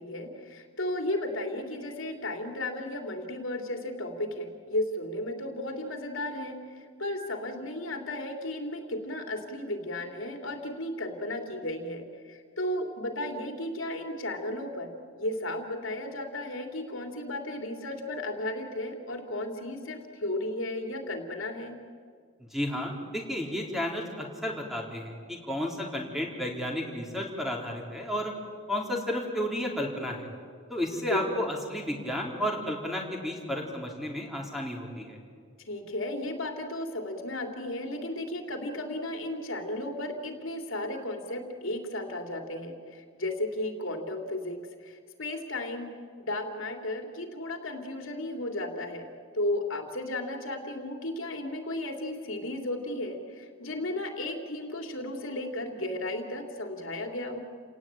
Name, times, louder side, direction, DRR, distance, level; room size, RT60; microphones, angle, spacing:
voice 1, 0.0-21.8 31.1-31.5 35.6-45.9 46.2-57.4, left 1 dB, 70° left, 4 dB, 3.0 m, -34 dB
voice 2, 22.5-28.3 28.7-30.3 30.7-35.2, left 1 dB, ahead, 0 dB, 3.7 m, -32 dB
30.0 x 18.5 x 8.9 m, 2.1 s
head